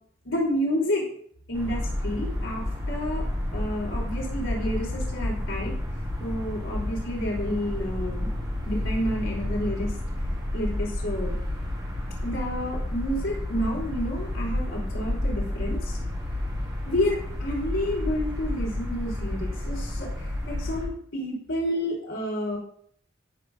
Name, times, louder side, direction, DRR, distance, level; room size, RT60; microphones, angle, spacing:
voice 1, 0.2-1.0 1.5-3.3 3.5-5.7 6.2-8.3 8.6-10.0 10.5-11.3 12.2-16.0 16.9-22.6, equal, 80° left, -3 dB, 3.0 m, -30 dB
sound 1, 1.5-20.9, left 1 dB, 25° right, 3.5 m, -30 dB
17.5 x 6.2 x 2.4 m, 0.62 s
head